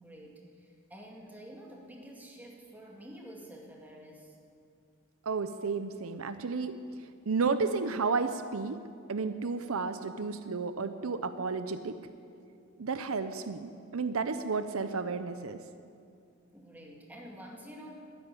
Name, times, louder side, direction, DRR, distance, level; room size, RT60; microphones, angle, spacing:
voice 1, 0.0-4.4 16.5-18.0, equal, 10° right, -1 dB, 2.2 m, -49 dB
voice 2, 5.2-6.8 7.3-8.8 9.1-12.0 12.8-15.6, right 4 dB, 75° right, 10 dB, 0.7 m, -32 dB
13.0 x 10.5 x 9.8 m, 2.4 s
head